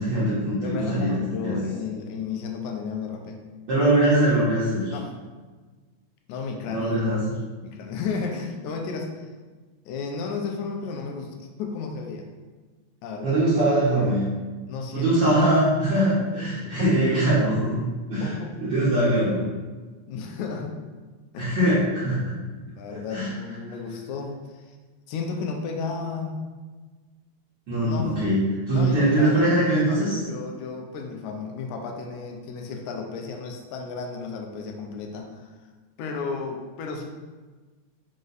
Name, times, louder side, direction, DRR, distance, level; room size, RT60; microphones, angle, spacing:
voice 1, 0.0-1.1 1.4-1.6 3.7-4.9 6.7-7.2 13.2-14.2 14.9-17.8 18.1-19.5 21.4-22.2 22.9-23.3 27.7-28.4 28.7-30.2, right 1 dB, 90° right, -10 dB, 0.9 m, -22 dB
voice 2, 0.6-3.4 4.9-5.1 6.3-7.3 7.6-9.3 9.9-12.3 13.0-13.4 14.7-15.1 16.6-16.9 18.2-18.5 20.1-20.8 21.3-21.6 22.0-24.8 25.1-26.4 27.8-28.2 28.7-35.5 36.0-37.0, left 5 dB, 80° left, 3 dB, 2.0 m, -33 dB
5.2 x 2.5 x 3.9 m, 1.4 s
omnidirectional pair, 3.4 m